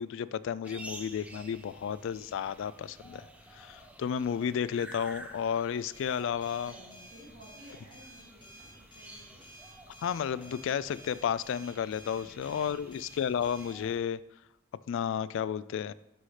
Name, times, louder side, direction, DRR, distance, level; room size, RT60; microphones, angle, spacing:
voice 1, 0.0-3.3 3.5-6.7 10.0-14.2 14.9-15.9, left 8 dB, 65° left, 18 dB, 0.3 m, -32 dB
sound 1, 0.6-14.0, right 1 dB, 5° right, 0.7 m, -51 dB
voice 2, 1.4-1.8 6.6-9.4 12.0-13.0, right 1 dB, 65° right, -5 dB, 2.5 m, -55 dB
sound 2, 5.9-13.8, equal, 25° left, 1.4 m, -53 dB
12.5 x 5.6 x 3.3 m, 0.91 s
head